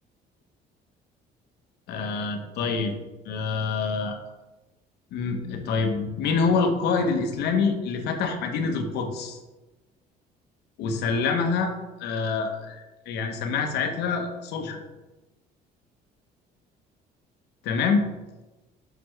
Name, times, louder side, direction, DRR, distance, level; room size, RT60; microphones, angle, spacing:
voice 1, 1.9-3.0 3.2-4.2 5.1-9.4 10.8-11.7 12.0-14.8 17.6-18.0, left 4 dB, 80° left, 5 dB, 0.9 m, -26 dB
6.7 x 5.1 x 3.2 m, 1.1 s
cardioid pair, 110°, 17 cm